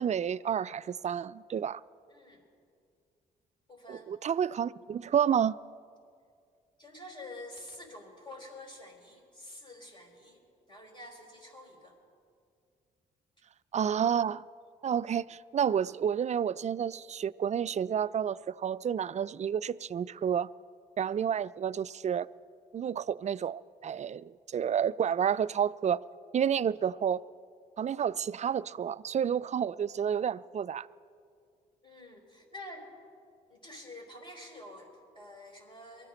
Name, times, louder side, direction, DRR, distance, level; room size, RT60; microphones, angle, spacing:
voice 1, 0.0-1.8 3.9-5.6 13.7-14.4 14.8-20.5 21.0-22.3 22.7-26.0 26.3-27.2 27.8-30.9, right 8 dB, 35° right, 0.4 m, -30 dB
voice 2, 2.1-2.4 3.7-4.1 6.8-10.4 10.7-12.0 31.8-32.9 33.5-36.1, left 1 dB, 25° left, 5.1 m, -48 dB
23.0 x 14.0 x 4.0 m
hypercardioid pair, 50°, 20 cm